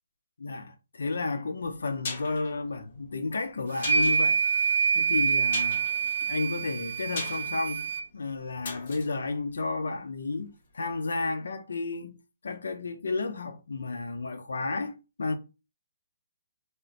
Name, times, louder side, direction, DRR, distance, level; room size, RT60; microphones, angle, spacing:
voice 1, 0.4-4.4 4.9-5.8 6.2-12.2 12.4-15.4, left 3 dB, 90° left, 0.5 m, -32 dB
sound 1, 1.6-10.5 10.8-10.9, left 4 dB, 45° left, 0.9 m, -42 dB
sound 2, 3.8-8.0, right 6 dB, 65° right, 0.4 m, -26 dB
2.5 x 2.1 x 3.8 m
hypercardioid pair, 165°, 0 cm